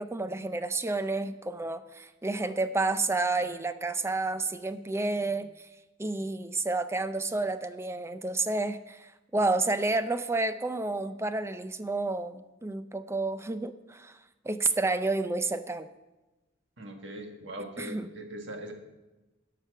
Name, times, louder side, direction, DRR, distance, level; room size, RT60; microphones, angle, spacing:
voice 1, 0.0-5.7 6.0-14.2 14.4-15.9 17.8-18.1, right 2 dB, 15° right, 11 dB, 0.4 m, -30 dB
voice 2, 16.8-18.7, right 1 dB, 65° right, 4 dB, 1.6 m, -41 dB
12.0 x 5.9 x 6.6 m, 1.1 s
head